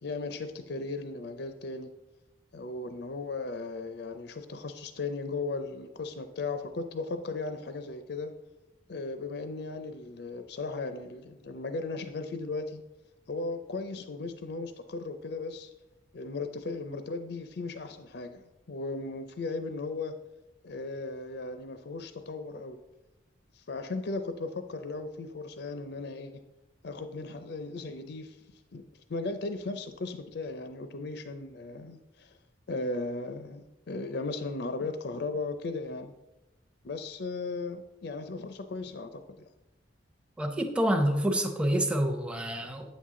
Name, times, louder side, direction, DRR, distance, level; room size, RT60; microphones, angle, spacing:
voice 1, 0.0-1.9 2.5-8.3 8.9-12.8 13.3-15.7 16.1-20.1 20.6-22.8 23.5-26.3 26.8-28.4 28.7-32.4 32.7-36.1 36.8-39.2, left 3 dB, 60° left, 8 dB, 0.5 m, -36 dB
voice 2, 40.4-42.9, equal, 5° right, 3 dB, 0.8 m, -27 dB
8.7 x 7.3 x 3.7 m, 0.97 s
head